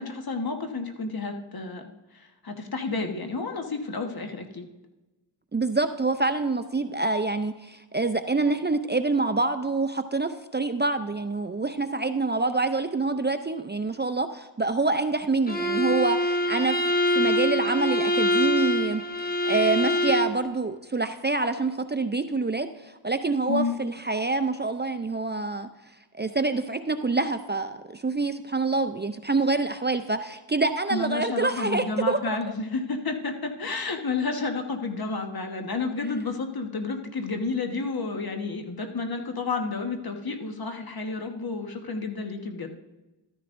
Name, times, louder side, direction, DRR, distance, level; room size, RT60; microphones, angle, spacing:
voice 1, 0.0-4.7 23.5-23.8 30.9-42.8, left 3 dB, 50° left, 4 dB, 1.4 m, -31 dB
voice 2, 5.5-16.8 17.1-25.7 26.2-32.4, right 3 dB, 25° right, 9 dB, 0.5 m, -26 dB
Bowed string instrument, 15.5-20.4, equal, 20° left, 1.3 m, -24 dB
13.5 x 10.0 x 2.6 m, 1.1 s
cardioid pair, 50°, 45 cm